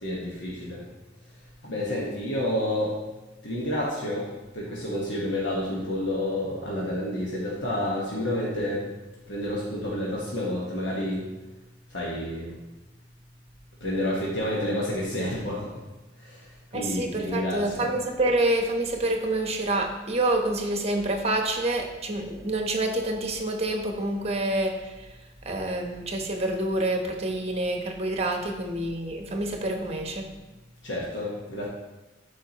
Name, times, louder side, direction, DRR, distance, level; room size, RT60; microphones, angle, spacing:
voice 1, 0.0-0.8 1.6-2.9 3.4-4.3 4.5-8.8 9.3-11.2 11.9-12.5 13.8-15.7 16.2-16.4 16.7-17.9 30.8-31.7, left 1 dB, 85° left, -5 dB, 1.4 m, -29 dB
voice 2, 16.7-24.9 25.4-30.3, right 1 dB, 35° right, 3 dB, 1.0 m, -27 dB
12.0 x 4.8 x 3.0 m, 1.1 s
head